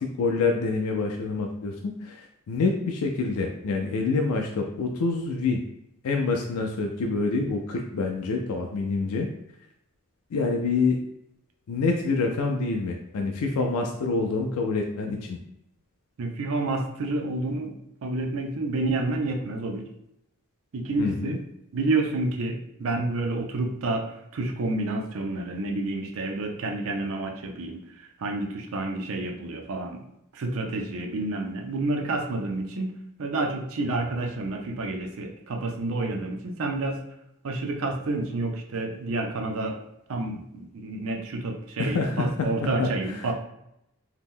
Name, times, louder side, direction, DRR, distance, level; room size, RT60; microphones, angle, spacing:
voice 1, 0.0-5.6 6.0-9.3 10.3-11.0 11.7-15.4 21.0-21.4 41.8-42.5 42.8-42.9 43.2-43.3, left 3 dB, 90° left, 2 dB, 0.4 m, -26 dB
voice 2, 16.2-17.7 18.0-19.8 20.7-21.4 21.7-24.1 24.3-30.0 30.3-37.0 37.4-39.8 40.1-43.3, right 2 dB, 65° right, 2 dB, 0.5 m, -29 dB
2.8 x 2.0 x 3.5 m, 0.81 s
head